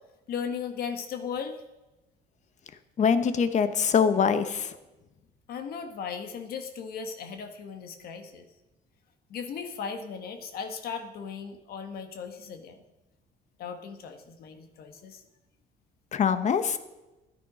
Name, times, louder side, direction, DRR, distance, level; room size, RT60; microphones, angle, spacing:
voice 1, 0.3-1.6 5.5-8.4 9.3-12.8 13.6-15.2, left 6 dB, 65° left, 7 dB, 1.6 m, -37 dB
voice 2, 3.0-4.7 16.1-16.8, left 6 dB, 45° left, 11 dB, 1.1 m, -23 dB
14.0 x 10.0 x 5.1 m, 1.0 s
cardioid pair, 110°, 17 cm